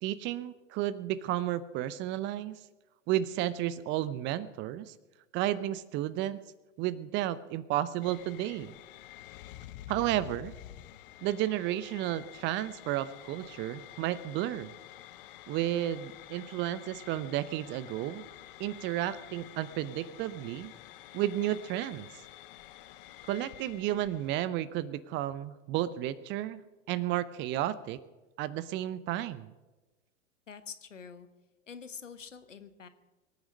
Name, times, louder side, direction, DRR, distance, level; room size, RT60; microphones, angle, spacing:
voice 1, 0.0-2.6 3.1-4.9 5.3-6.4 6.8-8.7 9.9-10.5 11.2-14.7 15.5-18.2 18.6-20.7 21.1-22.1 23.2-26.6 26.9-28.0 28.4-29.5, right 13 dB, 30° right, 18 dB, 0.7 m, -32 dB
sound 1, 8.0-24.3, left 14 dB, 45° left, 1.1 m, -49 dB
voice 2, 30.5-31.3 31.7-32.9, left 6 dB, 80° left, 12 dB, 1.3 m, -46 dB
23.0 x 9.3 x 6.4 m, 1.1 s
figure-of-eight pair, 95°, 37 cm